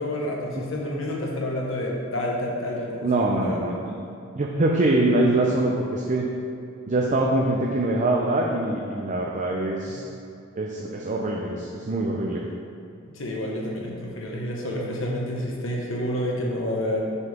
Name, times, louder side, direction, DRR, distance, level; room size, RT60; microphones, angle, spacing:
voice 1, 0.0-3.6 9.9-10.0 13.1-17.0, left 1 dB, 70° left, -2 dB, 1.3 m, -29 dB
voice 2, 3.0-3.9 4.3-6.2 6.9-10.0 10.6-12.4, right 2 dB, 40° right, -1 dB, 0.6 m, -24 dB
6.9 x 6.7 x 3.6 m, 2.6 s
head